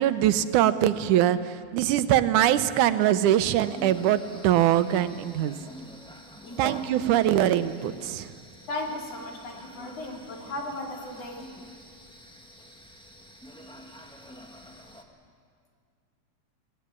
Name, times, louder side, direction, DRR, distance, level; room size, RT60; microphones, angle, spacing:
voice 1, 0.0-5.6 6.6-8.3, right 12 dB, 85° right, 12 dB, 2.3 m, -23 dB
sound 1, 3.3-15.0, equal, 5° left, 0.7 m, -47 dB
voice 2, 6.4-6.9 8.7-11.4, left 2 dB, 55° left, 0 dB, 3.9 m, -36 dB
21.0 x 19.5 x 9.5 m, 2.1 s
omnidirectional pair, 3.4 m